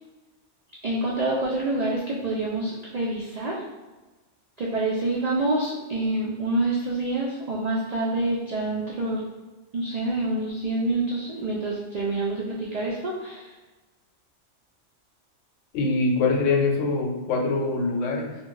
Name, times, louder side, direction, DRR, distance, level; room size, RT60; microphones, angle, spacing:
voice 1, 0.8-3.6 4.6-9.2 9.7-13.5, right 2 dB, 90° right, -4 dB, 0.3 m, -27 dB
voice 2, 15.7-18.4, left 3 dB, 85° left, 0 dB, 1.0 m, -24 dB
2.3 x 2.1 x 3.8 m, 1.2 s
omnidirectional pair, 1.2 m